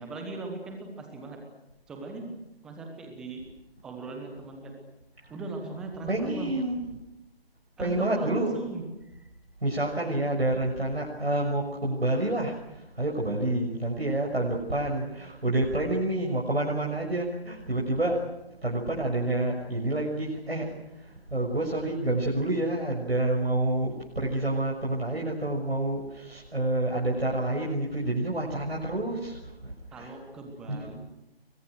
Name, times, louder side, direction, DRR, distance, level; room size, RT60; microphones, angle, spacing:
voice 1, 0.0-1.4 1.9-2.3 2.6-3.4 3.8-4.7 5.3-6.6 7.8-8.8 11.7-11.8 13.4-13.5 29.9-31.0, right 3 dB, ahead, 4 dB, 1.1 m, -38 dB
voice 2, 6.1-6.8 7.8-8.5 9.6-18.2 18.6-30.1 30.7-30.9, right 1 dB, 75° right, -1 dB, 6.5 m, -28 dB
29.5 x 23.5 x 6.3 m, 0.92 s
figure-of-eight pair, 160°, 31 cm